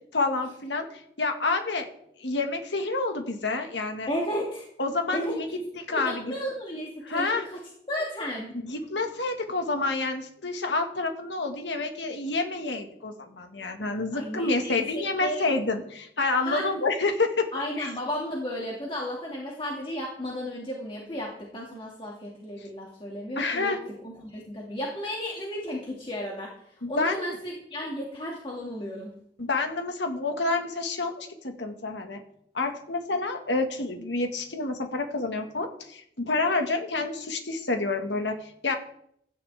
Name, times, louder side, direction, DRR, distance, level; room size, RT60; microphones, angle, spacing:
voice 1, 0.1-1.9 2.2-4.1 4.8-5.5 5.8-6.3 7.0-7.5 8.6-17.5 17.8-17.9 22.6-22.7 23.4-23.8 26.8-27.3 29.4-32.2 32.5-38.7, left 3 dB, 85° left, 4 dB, 1.9 m, -28 dB
voice 2, 4.1-4.7 5.1-5.6 5.9-7.6 7.9-8.5 14.1-15.4 16.4-16.7 17.5-23.7 24.0-26.5 26.9-29.2, equal, 30° left, -3 dB, 2.4 m, -34 dB
16.5 x 13.0 x 3.6 m, 0.71 s
head